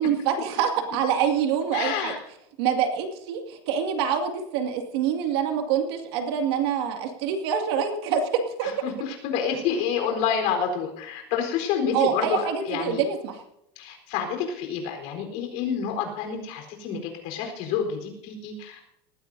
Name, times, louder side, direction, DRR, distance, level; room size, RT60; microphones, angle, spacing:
voice 1, 0.0-2.1 2.6-8.2 8.6-8.7 11.9-13.4, right 8 dB, 70° right, 4 dB, 2.4 m, -25 dB
voice 2, 1.7-2.2 8.8-13.0 13.8-18.9, left 7 dB, 55° left, 3 dB, 4.2 m, -28 dB
19.5 x 15.5 x 2.8 m, 0.79 s
supercardioid pair, 160°, 14 cm